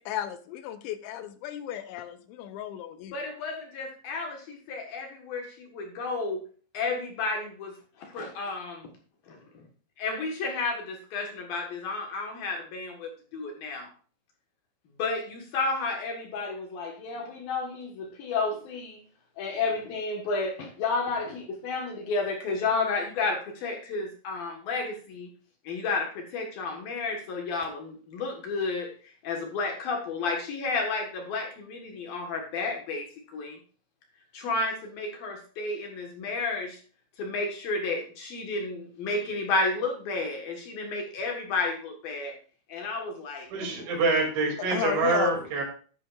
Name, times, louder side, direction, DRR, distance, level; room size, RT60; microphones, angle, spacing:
voice 1, 0.1-3.2 44.7-45.4, left 11 dB, 85° left, 10 dB, 2.9 m, -33 dB
voice 2, 3.1-6.4 6.7-8.9 9.3-9.4 10.0-13.9 15.0-19.0 19.4-25.3 25.6-28.9 29.2-33.1 33.3-33.6 34.3-36.8 37.2-42.3 42.7-43.5, left 3 dB, 65° left, 2 dB, 2.7 m, -31 dB
voice 3, 43.5-45.6, right 3 dB, 75° right, 0 dB, 5.0 m, -26 dB
11.5 x 9.5 x 2.5 m, 0.41 s
omnidirectional pair, 5.4 m